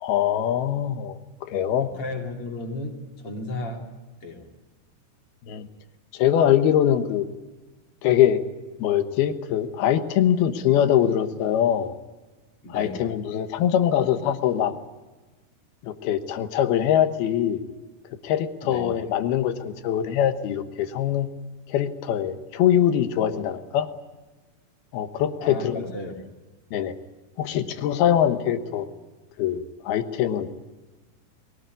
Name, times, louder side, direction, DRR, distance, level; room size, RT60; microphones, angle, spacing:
voice 1, 0.0-1.2 1.5-1.9 5.5-5.7 6.1-7.2 8.0-8.4 8.8-12.0 12.7-14.7 15.8-17.6 18.2-21.3 21.7-23.9 24.9-25.9 26.7-27.0 27.4-28.9 29.4-30.5, left 10 dB, 75° left, 10 dB, 3.1 m, -23 dB
voice 2, 1.8-3.9 4.2-4.5 12.6-13.1 18.6-18.9 25.4-26.1 27.4-27.6, left 2 dB, 35° left, 2 dB, 3.5 m, -34 dB
22.5 x 18.5 x 9.4 m, 1.2 s
omnidirectional pair, 4.7 m